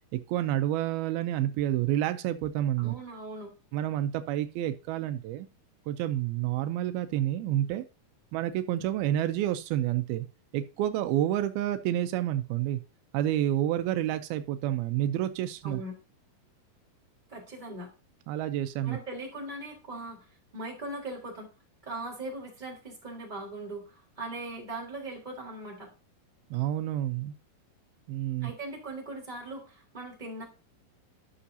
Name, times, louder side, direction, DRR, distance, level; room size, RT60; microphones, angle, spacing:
voice 1, 0.1-3.0 3.7-5.5 5.9-7.8 8.3-10.3 10.5-12.8 13.1-15.8 17.7-17.8 18.3-19.0 26.5-27.3 28.1-28.5, right 12 dB, 85° right, 10 dB, 2.5 m, -29 dB
voice 2, 2.8-3.5 15.6-15.9 17.3-17.9 18.8-21.5 21.8-25.9 28.4-30.4, right 2 dB, 10° right, -3 dB, 3.4 m, -40 dB
12.5 x 6.3 x 2.7 m, 0.32 s
omnidirectional pair, 4.4 m